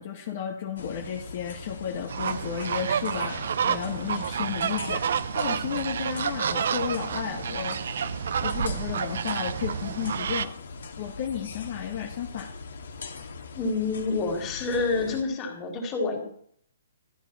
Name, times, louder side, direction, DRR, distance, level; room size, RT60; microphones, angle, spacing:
voice 1, 0.0-5.1 5.3-7.8 8.4-10.6 11.0-12.5, left 8 dB, 45° left, 0 dB, 1.8 m, -33 dB
sound 1, 0.8-15.2, left 4 dB, 75° left, 2.1 m, -41 dB
sound 2, 2.1-10.5, right 7 dB, 65° right, 0.7 m, -29 dB
voice 2, 13.6-16.2, left 3 dB, 20° left, 0 dB, 3.4 m, -28 dB
14.0 x 10.0 x 4.4 m, 0.63 s
hypercardioid pair, 155°, 0 cm